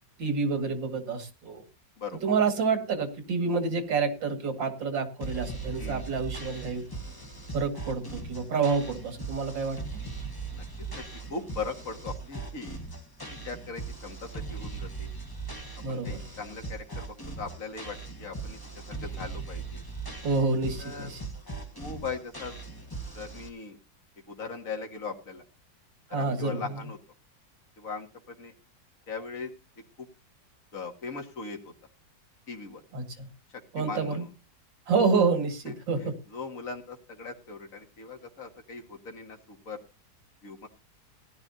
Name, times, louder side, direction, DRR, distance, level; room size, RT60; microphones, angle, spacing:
voice 1, 0.2-1.6 2.2-6.8 7.5-9.8 15.8-16.2 20.2-21.2 26.1-26.8 32.9-33.3 33.7-34.2 34.9-36.1, right 4 dB, 75° right, 6 dB, 2.8 m, -28 dB
sound 1, 5.2-23.5, right 3 dB, 15° left, 1.5 m, -39 dB
voice 2, 10.5-11.0 11.3-12.8 13.3-15.1 15.9-18.6 18.9-19.8 20.8-21.1 21.8-22.6 23.1-23.8 24.3-25.4 26.1-27.0 27.8-28.5 29.1-29.5 30.0-30.1 30.7-31.7 32.5-32.8 33.8-34.3 35.6-39.8 40.4-40.7, left 4 dB, 45° left, 2 dB, 2.3 m, -39 dB
17.0 x 11.0 x 2.8 m, 0.31 s
omnidirectional pair, 2.0 m